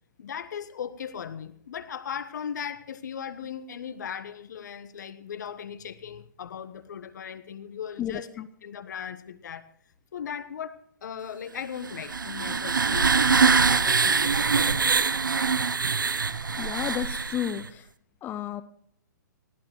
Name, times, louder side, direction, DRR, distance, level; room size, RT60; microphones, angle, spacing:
voice 1, 0.2-9.7 10.1-14.8, left 8 dB, 65° left, 14 dB, 1.2 m, -38 dB
sound 1, 11.8-17.7, right 5 dB, 90° right, 0.7 m, -23 dB
voice 2, 16.6-17.8 18.2-18.6, left 10 dB, 20° left, 13 dB, 0.6 m, -31 dB
19.5 x 16.0 x 3.1 m, 0.69 s
hypercardioid pair, 130°, 10 cm